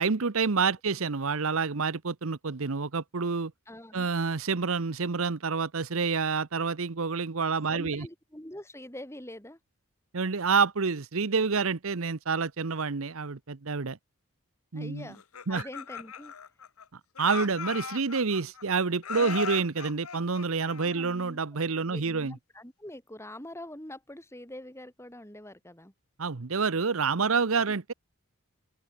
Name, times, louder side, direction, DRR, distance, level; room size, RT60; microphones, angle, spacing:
voice 1, 0.0-3.5 3.9-8.1 10.1-14.0 14.7-15.1 15.5-15.6 17.2-22.3 26.2-27.9, right 5 dB, 65° right, 0.9 m, -28 dB
voice 2, 3.7-4.1 7.7-9.6 14.7-15.2 15.5-16.3 19.2-19.4 20.8-21.4 21.9-25.9, left 1 dB, 10° left, 4.4 m, -44 dB
Laughter, 15.2-16.8 17.2-18.6 19.0-21.3, left 6 dB, 80° left, 1.1 m, -38 dB
open air
head